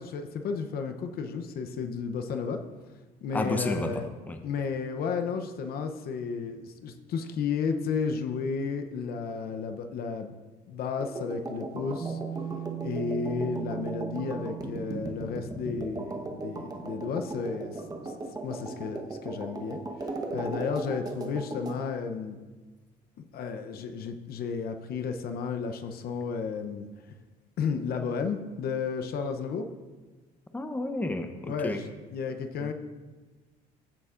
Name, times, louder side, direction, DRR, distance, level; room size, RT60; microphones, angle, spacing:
voice 1, 0.0-2.6 3.2-4.0 4.4-10.3 10.7-12.2 12.8-18.1 18.4-19.8 20.1-22.4 23.3-26.9 27.6-29.7 31.4-32.7, left 5 dB, 65° left, 6 dB, 0.7 m, -33 dB
voice 2, 3.3-4.4 30.5-31.8 32.6-32.7, left 2 dB, 10° left, 6 dB, 0.7 m, -32 dB
sound 1, 11.0-21.8, right 2 dB, 20° right, 1.1 m, -38 dB
sound 2, 12.0-18.7, right 11 dB, 55° right, 1.4 m, -41 dB
14.5 x 6.9 x 2.5 m, 1.3 s
cardioid pair, 110°, 17 cm